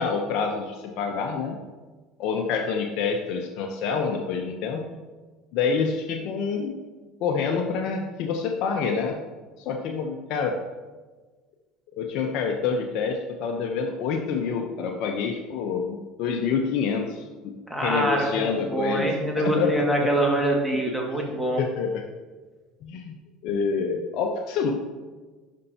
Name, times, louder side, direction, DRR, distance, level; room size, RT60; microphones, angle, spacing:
voice 1, 0.0-1.6 2.2-5.0 5.5-6.8 7.2-9.2 9.6-10.6 12.0-17.5 17.8-20.1 20.9-21.0 21.6-22.0 22.8-23.1 23.4-24.7, left 5 dB, 65° left, 2 dB, 0.7 m, -27 dB
voice 2, 17.7-21.6, right 1 dB, ahead, -2 dB, 1.9 m, -24 dB
11.5 x 5.4 x 2.8 m, 1.3 s
supercardioid pair, 95°, 0 cm